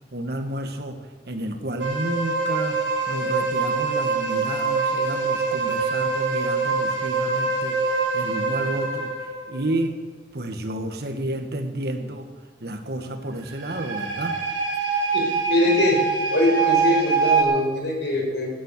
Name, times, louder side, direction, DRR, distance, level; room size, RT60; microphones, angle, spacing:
voice 1, 0.1-1.0 1.3-2.8 3.1-10.0 10.3-12.3 12.6-14.4, right 1 dB, 60° right, 6 dB, 1.6 m, -31 dB
sound 1, 1.8-9.6 13.4-17.4, right 4 dB, 90° right, 3.5 m, -24 dB
voice 2, 15.1-16.0 16.3-18.5, left 1 dB, 80° left, 0 dB, 5.1 m, -22 dB
16.5 x 10.5 x 6.8 m, 1.3 s
head